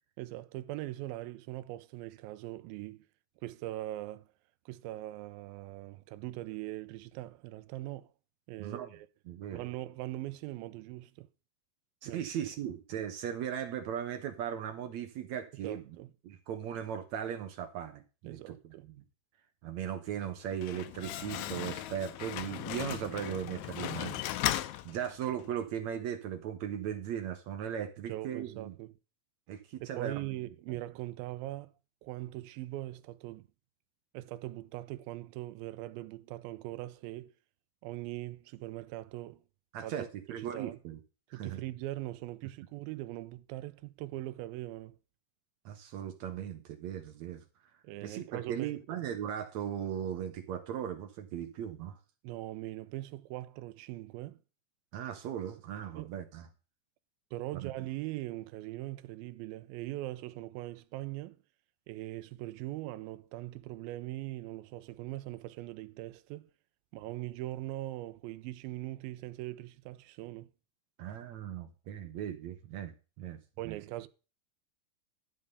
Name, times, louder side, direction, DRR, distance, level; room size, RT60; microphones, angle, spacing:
voice 1, 0.2-3.0 3.4-4.2 4.7-8.1 8.5-9.1 9.5-11.3 12.1-12.2 15.6-16.1 18.2-18.9 28.1-28.9 29.8-31.7 32.0-33.5 34.1-37.3 37.8-39.4 39.8-40.8 41.3-45.0 47.8-49.0 52.2-54.4 56.0-56.2 57.3-61.4 61.9-66.5 66.9-70.5 73.6-74.1, right 16 dB, 85° right, 2.4 m, -41 dB
voice 2, 8.6-8.9 9.3-9.6 12.0-15.8 16.2-18.6 18.8-19.0 19.6-24.2 24.9-28.8 29.5-30.1 39.7-41.0 41.3-41.6 45.7-47.4 48.0-52.0 54.9-56.5 57.6-57.7 71.0-72.9 73.2-73.4 73.6-73.8, right 9 dB, 70° right, 1.8 m, -38 dB
Slam, 20.4-25.5, left 14 dB, 85° left, 1.6 m, -37 dB
11.5 x 5.5 x 6.6 m
omnidirectional pair, 4.1 m